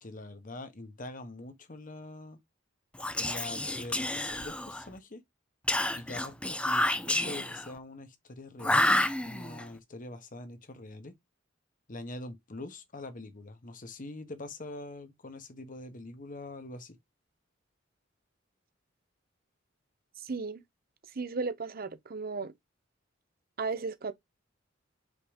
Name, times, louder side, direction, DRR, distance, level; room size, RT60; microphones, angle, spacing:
voice 1, 0.0-2.4 3.2-5.2 6.0-11.1 11.9-17.0, left 2 dB, 45° left, 1.2 m, -44 dB
Whispering, 2.9-4.9 5.7-7.7 8.6-9.6, left 1 dB, 5° left, 0.5 m, -29 dB
voice 2, 20.2-20.6 21.1-22.5 23.6-24.1, right 4 dB, 50° right, 0.8 m, -35 dB
5.3 x 3.8 x 5.1 m
head